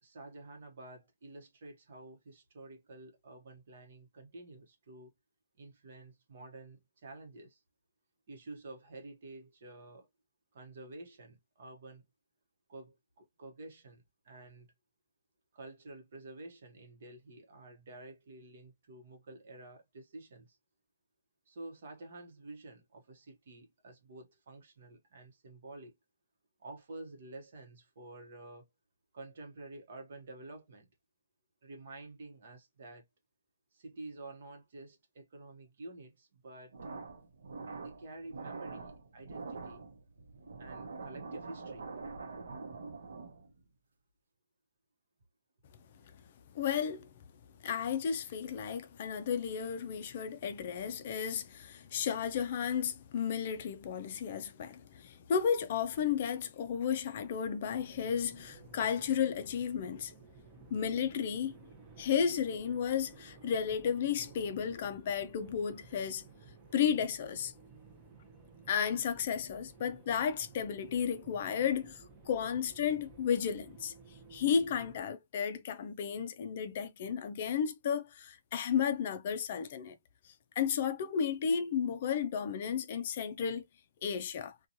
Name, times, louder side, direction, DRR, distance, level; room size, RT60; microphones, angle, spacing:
voice 1, 0.0-5.1 5.6-7.6 8.3-10.1 10.5-12.0 12.7-14.7 15.5-20.6 21.5-25.9 26.6-28.7 29.1-30.9 31.6-33.0 33.7-36.7 37.8-39.9 40.6-41.9, right 2 dB, 55° right, 0.9 m, -50 dB
sound 1, 36.7-43.6, right 4 dB, 80° right, 0.7 m, -45 dB
voice 2, 46.5-47.1 47.6-60.1 60.7-61.5 62.0-66.2 66.7-67.5 68.7-73.9 74.3-80.0 80.6-83.6 84.0-84.5, left 7 dB, 40° left, 0.4 m, -33 dB
sound 2, 57.7-75.0, right 4 dB, 15° right, 0.6 m, -55 dB
2.8 x 2.2 x 2.5 m
hypercardioid pair, 170°, 0 cm